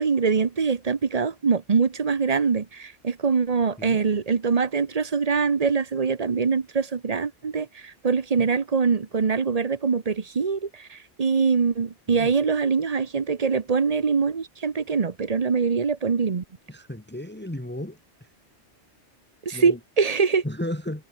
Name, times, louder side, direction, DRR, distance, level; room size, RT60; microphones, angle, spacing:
voice 1, 0.0-16.4 19.4-20.4, right 5 dB, 35° right, 0.9 m, -23 dB
voice 2, 16.7-18.3 19.5-19.8 20.4-21.0, left 1 dB, 10° left, 2.1 m, -34 dB
omnidirectional pair, 1.2 m